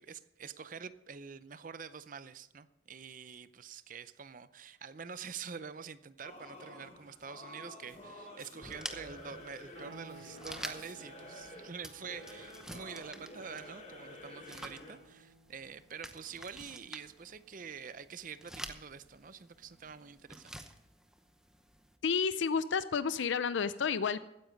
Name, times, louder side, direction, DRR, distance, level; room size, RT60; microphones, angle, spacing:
voice 1, 0.0-20.7, right 6 dB, 45° right, 14 dB, 0.6 m, -46 dB
Singing / Musical instrument, 6.2-15.1, left 1 dB, 35° left, 4.6 m, -50 dB
sound 1, 8.6-22.0, right 1 dB, 5° right, 0.8 m, -50 dB
sound 2, 9.7-20.3, right 3 dB, 65° right, 5.0 m, -59 dB
voice 2, 22.0-24.2, left 6 dB, 75° left, 14 dB, 0.5 m, -31 dB
15.5 x 9.7 x 5.2 m, 0.88 s
head